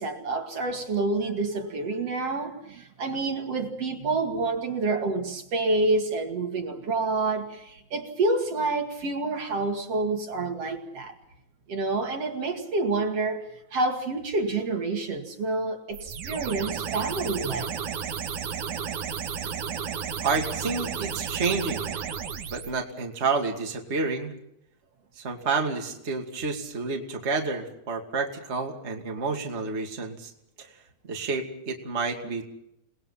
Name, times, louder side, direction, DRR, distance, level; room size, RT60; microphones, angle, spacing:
voice 1, 0.0-11.1 11.7-17.7, right 3 dB, 55° right, 3 dB, 3.1 m, -28 dB
sound 1, 15.9-22.7, right 7 dB, 80° right, 3.2 m, -33 dB
voice 2, 20.2-21.9 22.5-24.3 25.2-30.3 30.6-30.7 31.1-32.4, right 4 dB, 25° right, 2 dB, 2.5 m, -29 dB
29.0 x 20.5 x 5.8 m, 0.81 s
omnidirectional pair, 3.4 m